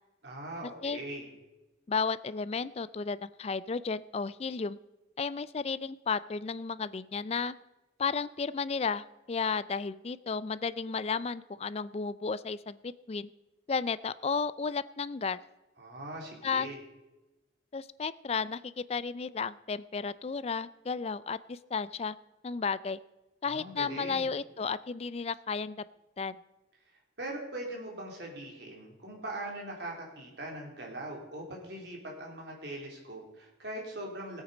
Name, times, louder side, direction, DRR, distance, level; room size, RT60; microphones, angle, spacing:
voice 1, 0.2-1.3 15.8-16.8 23.5-24.3 27.2-34.4, right 1 dB, 65° right, -1 dB, 3.4 m, -41 dB
voice 2, 1.9-4.8 5.2-7.5 8.0-13.3 13.7-15.4 16.4-16.7 17.7-22.1 22.4-23.0 23.4-25.8 26.2-26.4, left 5 dB, 35° left, 16 dB, 0.4 m, -33 dB
17.5 x 8.1 x 5.1 m, 1.1 s
head